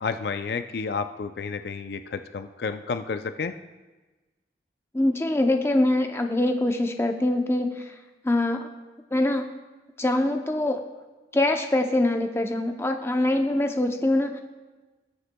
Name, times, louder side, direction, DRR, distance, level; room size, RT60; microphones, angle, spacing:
voice 1, 0.0-3.5, left 5 dB, 60° left, 9 dB, 0.4 m, -31 dB
voice 2, 4.9-7.9 8.2-8.7 9.1-9.4 10.0-10.8 11.3-14.4, left 1 dB, 15° left, 5 dB, 0.6 m, -24 dB
19.0 x 7.9 x 2.2 m, 1.2 s
head